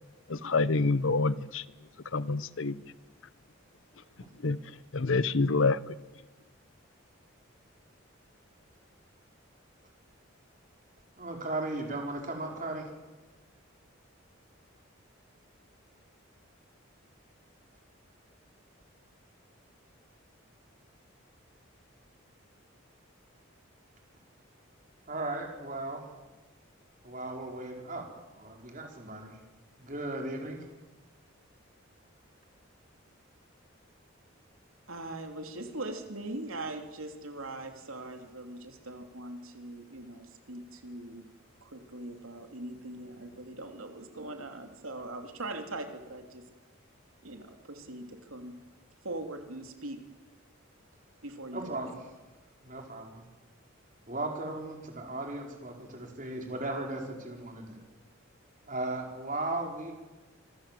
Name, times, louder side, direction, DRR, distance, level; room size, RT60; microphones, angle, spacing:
voice 1, 0.3-1.6 2.1-2.8 4.4-4.6 4.9-5.8, left 3 dB, 70° left, 17 dB, 0.8 m, -27 dB
voice 2, 11.2-12.9 25.1-26.1 27.0-28.1 28.3-29.4 29.8-30.6 51.5-52.1 52.6-53.2 54.1-57.8 58.7-59.9, right 2 dB, 40° right, 2 dB, 4.9 m, -36 dB
voice 3, 34.9-41.2 41.6-46.4 47.2-48.6 49.0-50.0 51.2-51.7, right 2 dB, 80° right, 5 dB, 3.0 m, -41 dB
26.0 x 25.0 x 7.7 m, 1.2 s
head